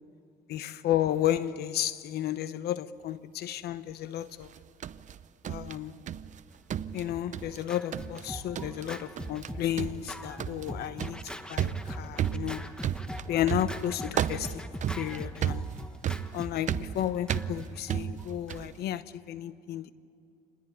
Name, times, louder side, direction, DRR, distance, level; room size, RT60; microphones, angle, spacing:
voice 1, 0.5-4.5 5.5-6.0 6.9-12.7 13.3-14.7 14.9-15.7 16.3-19.9, left 12 dB, 70° left, 1.0 m, -32 dB
sound 1, 4.4-6.4 6.7-7.6 7.9-8.3 8.5-8.9 9.2-9.5 9.8-18.8, right 9 dB, 45° right, 0.7 m, -34 dB
Scratching (performance technique), 6.8-18.9, equal, 5° left, 1.3 m, -42 dB
27.0 x 20.5 x 9.8 m
cardioid pair, 110°, 17 cm